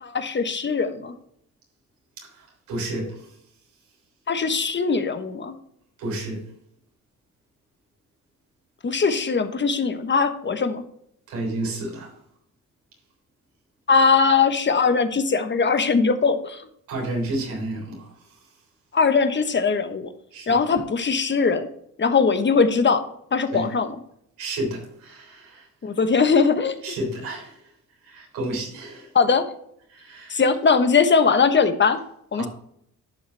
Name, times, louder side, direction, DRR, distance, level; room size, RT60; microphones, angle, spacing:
voice 1, 0.0-1.1 4.3-5.5 8.8-10.8 13.9-16.6 18.9-20.1 20.5-21.7 22.0-23.1 23.3-23.9 25.8-26.7 29.1-29.5 30.3-32.0 32.3-32.5, left 5 dB, 35° left, 1.1 m, -20 dB
voice 2, 2.2-3.4 6.0-6.4 11.3-12.1 16.9-18.5 20.3-20.6 23.5-23.7 24.4-25.7 26.8-27.7 28.0-29.1 29.9-30.4 32.3-32.5, right 1 dB, 90° right, 3.7 m, -31 dB
11.5 x 5.5 x 3.4 m
cardioid pair, 75°, 33 cm